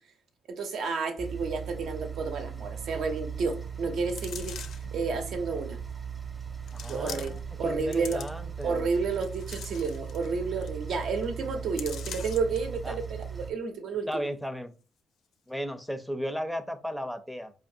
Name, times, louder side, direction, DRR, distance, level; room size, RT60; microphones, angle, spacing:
voice 1, 0.5-4.5 4.9-5.8 6.9-7.3 7.6-8.2 8.6-14.3, right 4 dB, 70° right, 6 dB, 0.8 m, -31 dB
sound 1, 1.2-13.5, right 7 dB, 25° right, 0.8 m, -38 dB
sound 2, 4.1-4.9 5.7-5.8 6.7-7.5 7.8-8.6 9.1-10.3 10.6-10.7 11.0-11.2 11.8-12.6 13.0-13.1, left 8 dB, 75° left, 0.4 m, -42 dB
voice 2, 6.7-8.9 12.8-13.0 14.1-14.7 15.5-17.5, equal, ahead, 9 dB, 0.5 m, -35 dB
4.8 x 2.5 x 2.6 m, 0.36 s
cardioid pair, 90°, 0 cm